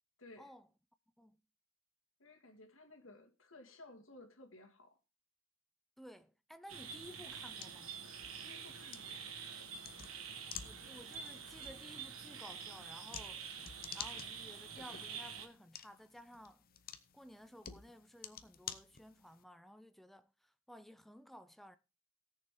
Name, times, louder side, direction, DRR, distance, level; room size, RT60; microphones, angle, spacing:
voice 1, 0.2-0.5 2.2-5.0 8.4-9.2, left 2 dB, 70° left, 2.1 m, -57 dB
voice 2, 6.0-8.0 10.6-13.5 13.9-16.6 17.1-21.8, equal, ahead, 0.5 m, -55 dB
sound 1, 6.7-15.5, right 6 dB, 85° right, 1.5 m, -47 dB
sound 2, 7.1-19.4, left 9 dB, 45° left, 0.8 m, -52 dB
17.5 x 6.7 x 3.7 m
head